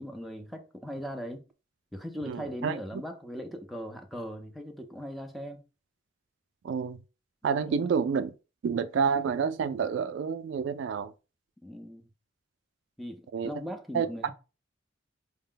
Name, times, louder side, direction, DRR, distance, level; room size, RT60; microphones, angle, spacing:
voice 1, 0.0-1.4 1.9-5.6 7.7-7.9 11.6-12.1 13.0-14.3, equal, ahead, 0.5 m, -39 dB
voice 2, 2.2-2.8 6.6-7.0 7.4-8.3 8.6-11.1 13.3-13.5 13.9-14.1, right 6 dB, 70° right, 0.3 m, -28 dB
4.7 x 2.1 x 3.7 m
head